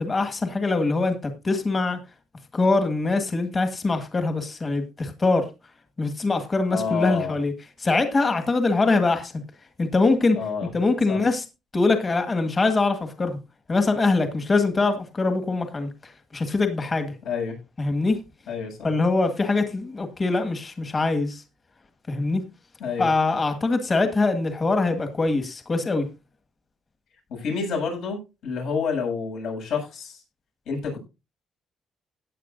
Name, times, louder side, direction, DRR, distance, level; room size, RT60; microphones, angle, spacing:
voice 1, 0.0-2.0 2.5-5.5 6.0-7.5 7.8-9.3 9.8-10.4 10.7-11.4 11.7-13.4 13.7-17.1 17.8-18.2 18.8-21.4 22.1-22.5 23.0-26.1, left 3 dB, 30° left, 1.8 m, -23 dB
voice 2, 6.7-7.3 10.3-10.7 11.1-11.2 17.2-17.6 18.5-18.9 22.8-23.1 27.3-30.2 30.7-31.0, left 5 dB, 80° left, 7.8 m, -28 dB
16.5 x 9.6 x 2.6 m
cardioid pair, 110°, 0 cm